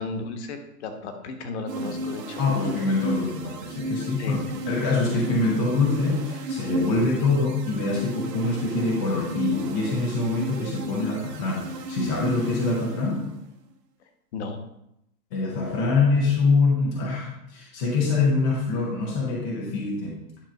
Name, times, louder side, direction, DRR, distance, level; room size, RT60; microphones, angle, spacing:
voice 1, 0.0-2.4 4.2-4.6 14.3-14.6, left 3 dB, 45° left, 6 dB, 1.2 m, -34 dB
sound 1, 1.7-13.5, right 1 dB, 90° right, 1.2 m, -34 dB
voice 2, 2.4-13.2 15.3-20.1, left 3 dB, 10° left, -3 dB, 0.5 m, -24 dB
10.0 x 3.6 x 5.9 m, 0.81 s
hypercardioid pair, 155°, 47 cm